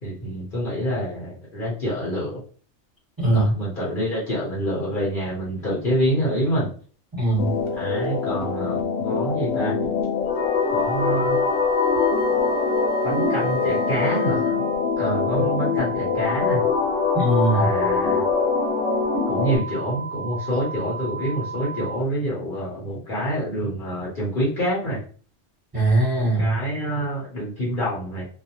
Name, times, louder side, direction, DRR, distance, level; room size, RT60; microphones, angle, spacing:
voice 1, 0.0-2.4 3.3-6.7 7.8-9.7 10.7-11.4 13.0-14.6 15.0-16.6 17.5-18.2 19.3-25.0 26.2-28.3, equal, 50° left, -6 dB, 0.9 m, -27 dB
voice 2, 3.2-3.5 7.1-7.5 17.1-17.7 25.7-26.6, right 2 dB, 20° right, -7 dB, 1.1 m, -20 dB
sound 1, 7.4-19.6, left 5 dB, 80° left, 1.0 m, -23 dB
Wind instrument woodwind instrument, 10.3-14.9, right 1 dB, 30° left, 0.5 m, -33 dB
sound 2, 10.7-22.0, right 5 dB, 60° right, 0.8 m, -34 dB
2.4 x 2.1 x 2.8 m, 0.41 s
omnidirectional pair, 1.3 m